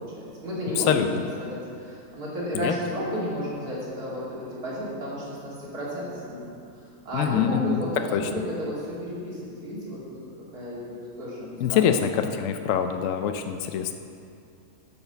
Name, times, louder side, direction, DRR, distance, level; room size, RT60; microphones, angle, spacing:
voice 1, 0.0-1.1 1.4-6.5 7.0-10.0 10.5-11.8, equal, 75° right, -7 dB, 3.2 m, -32 dB
voice 2, 0.7-1.2 2.5-2.7 7.1-7.8 8.1-8.3 11.6-13.9, left 8 dB, 65° left, 7 dB, 0.8 m, -24 dB
11.0 x 5.7 x 6.8 m, 2.5 s
omnidirectional pair, 1.6 m